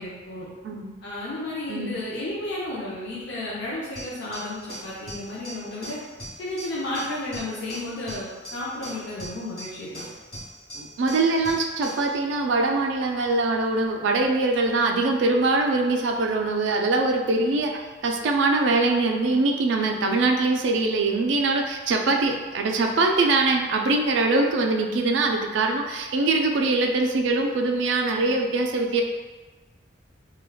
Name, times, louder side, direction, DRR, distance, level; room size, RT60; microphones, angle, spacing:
voice 1, 0.0-0.5 1.0-6.0 6.4-10.1, left 1 dB, 55° left, -7 dB, 0.5 m, -32 dB
sound 1, 4.0-12.1, right 1 dB, 35° left, 1.3 m, -40 dB
voice 2, 10.8-29.0, right 3 dB, 60° right, 2 dB, 0.3 m, -23 dB
3.4 x 2.2 x 2.2 m, 1.3 s
head